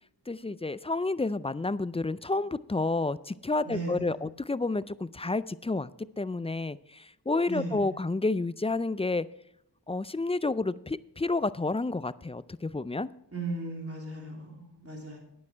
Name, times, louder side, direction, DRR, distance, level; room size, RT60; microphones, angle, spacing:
voice 1, 0.3-5.9 6.2-9.3 9.9-13.1, left 3 dB, 15° left, 17 dB, 0.3 m, -30 dB
voice 2, 3.6-4.2 7.5-8.0 13.3-15.2, right 2 dB, 35° right, -1 dB, 3.3 m, -37 dB
10.0 x 9.6 x 4.4 m, 0.78 s
wide cardioid pair, 45°, 42 cm